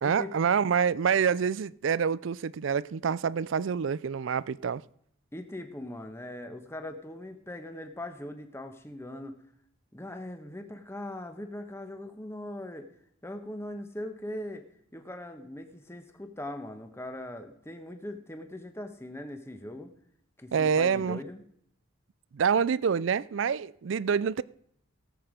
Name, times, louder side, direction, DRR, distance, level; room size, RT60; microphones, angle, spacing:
voice 1, 0.0-4.8 20.5-21.2 22.3-24.4, right 6 dB, 65° right, 0.4 m, -27 dB
voice 2, 5.3-9.4 9.9-12.9 13.2-14.6 14.9-19.9 20.4-21.4, left 1 dB, 10° left, 1.2 m, -40 dB
18.0 x 7.9 x 5.1 m
head